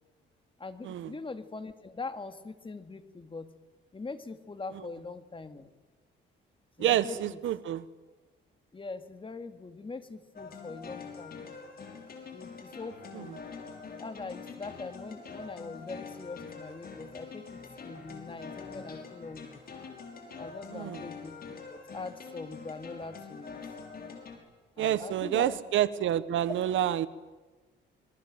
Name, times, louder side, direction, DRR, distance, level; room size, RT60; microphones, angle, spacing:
voice 1, 0.6-3.5 3.9-5.7 6.8-7.4 8.7-11.4 12.3-13.4 14.0-19.6 20.4-21.4 21.7-23.6 24.8-25.6, left 3 dB, 25° left, 9 dB, 2.3 m, -42 dB
voice 2, 6.8-7.8 13.2-13.3 20.7-21.0 24.8-27.1, right 11 dB, 75° right, 13 dB, 1.1 m, -28 dB
sound 1, 10.3-24.4, left 5 dB, 50° left, 5.8 m, -45 dB
26.0 x 21.5 x 7.8 m, 1.3 s
cardioid pair, 90°, 20 cm